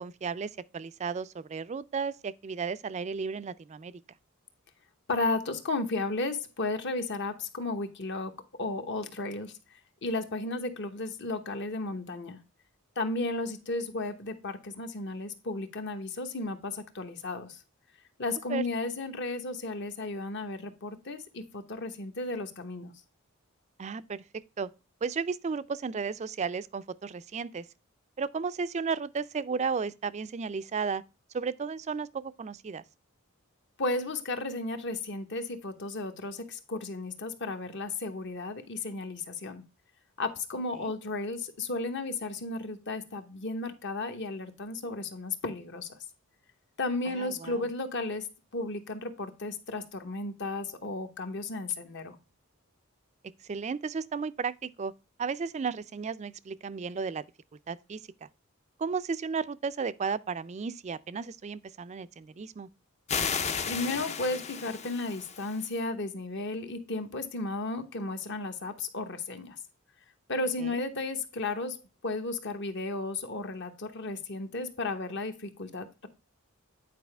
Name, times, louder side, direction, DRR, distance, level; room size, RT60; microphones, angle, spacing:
voice 1, 0.0-3.9 18.5-18.6 23.8-24.2 24.6-24.7 25.0-27.7 28.2-31.0 31.3-32.8 40.8-40.9 47.1-47.6 53.4-54.9 55.2-57.2 57.7-58.3 58.8-62.7 70.6-70.8, right 5 dB, 30° right, 0.3 m, -34 dB
voice 2, 5.1-9.5 10.0-12.4 13.0-17.6 18.2-22.9 33.8-39.6 40.2-46.0 46.8-48.3 48.5-52.2 63.7-69.6 70.3-76.1, left 2 dB, 55° left, 1.0 m, -34 dB
sound 1, 63.1-65.7, left 6 dB, 30° left, 0.5 m, -33 dB
9.4 x 4.8 x 3.3 m
head